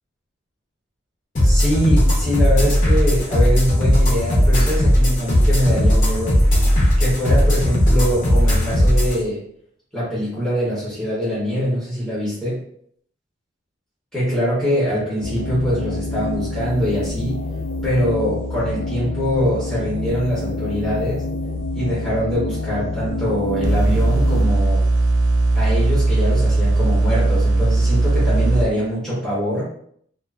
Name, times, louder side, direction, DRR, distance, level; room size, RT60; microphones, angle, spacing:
sound 1, 1.4-9.2, equal, 40° left, 0.7 m, -16 dB
voice 1, 1.4-6.4 7.0-9.4 9.9-12.6 14.1-17.4 17.8-21.2 21.7-24.8 25.5-29.7, equal, 5° left, -10 dB, 1.0 m, -23 dB
sound 2, 15.2-24.4, left 2 dB, 80° left, 0.5 m, -27 dB
sound 3, 23.6-28.6, right 2 dB, 75° right, 0.3 m, -18 dB
2.5 x 2.5 x 2.4 m, 0.65 s
head